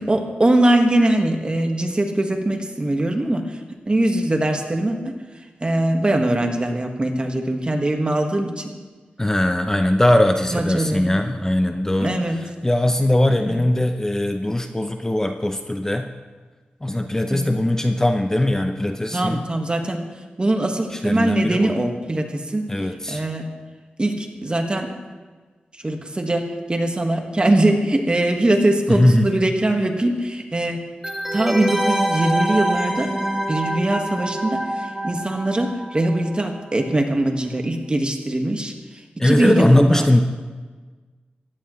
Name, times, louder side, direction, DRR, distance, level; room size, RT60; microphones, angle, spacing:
voice 1, 0.0-3.6 3.9-5.2 5.6-8.7 10.5-11.2 12.0-12.4 13.5-13.6 17.3-17.5 19.1-20.1 20.4-22.7 23.1-23.5 24.0-24.9 25.8-30.8 31.3-33.1 33.5-40.1, right 1 dB, 30° right, 3 dB, 1.6 m, -21 dB
voice 2, 9.2-12.2 12.6-16.1 16.8-19.4 20.9-21.7 22.7-23.2 28.9-29.3 39.2-40.2, left 1 dB, 15° left, 6 dB, 0.7 m, -20 dB
sound 1, 31.0-36.5 36.8-36.9, right 1 dB, 5° right, 1.4 m, -26 dB
15.5 x 11.5 x 3.1 m, 1.4 s
cardioid pair, 65°, 3 cm